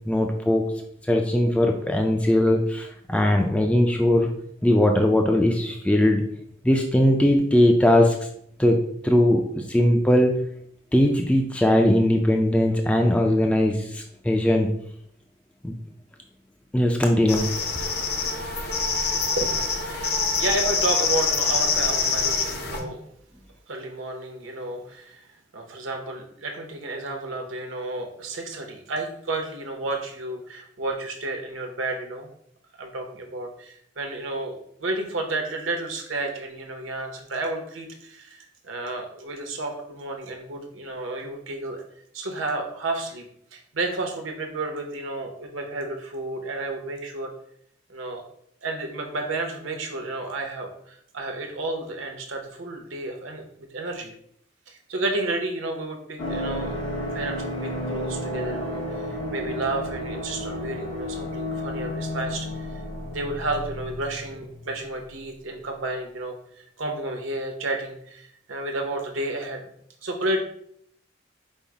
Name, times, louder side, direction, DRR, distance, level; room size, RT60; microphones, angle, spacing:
voice 1, 0.1-0.7 1.1-4.3 4.6-6.2 6.6-8.2 8.6-8.8 9.0-10.3 10.9-14.7 15.6-15.7 16.7-17.5 22.8-22.9, left 1 dB, 5° left, 2 dB, 0.3 m, -20 dB
sound 1, 17.3-22.8, left 5 dB, 50° left, 0.6 m, -25 dB
voice 2, 19.3-23.0 23.7-25.3 25.5-32.3 32.7-41.8 42.1-43.2 43.5-47.3 47.9-48.2 48.6-54.1 54.7-56.8 57.1-62.8 63.1-69.7 70.0-70.4, right 2 dB, 80° right, 3 dB, 0.9 m, -31 dB
sound 2, 56.2-64.7 65.0-65.1, left 1 dB, 80° left, 1.1 m, -32 dB
5.3 x 2.0 x 4.6 m, 0.68 s
head